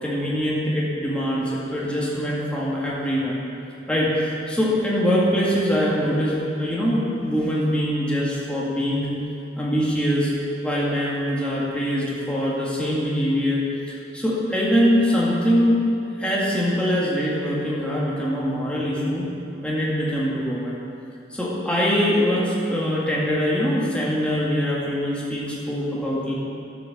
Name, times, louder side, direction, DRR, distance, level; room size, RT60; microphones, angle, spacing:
voice 1, 0.0-3.4 3.9-9.1 9.6-10.3 10.6-15.8 16.2-19.3 19.6-20.8 21.3-26.3, equal, 5° left, -6 dB, 1.9 m, -23 dB
10.5 x 8.7 x 6.7 m, 2.6 s
head